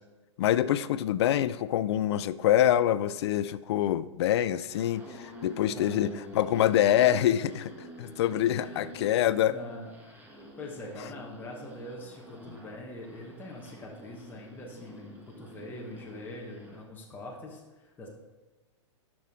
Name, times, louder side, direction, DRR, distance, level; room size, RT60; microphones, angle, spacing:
voice 1, 0.4-7.7 8.0-9.5, left 11 dB, 60° left, 17 dB, 0.4 m, -25 dB
sound 1, 4.7-16.9, equal, 10° right, 1.6 m, -48 dB
voice 2, 5.7-6.2 8.5-8.9 9.5-18.1, left 1 dB, 10° left, -2 dB, 1.3 m, -43 dB
12.0 x 6.1 x 3.7 m, 1.2 s
hypercardioid pair, 135°, 16 cm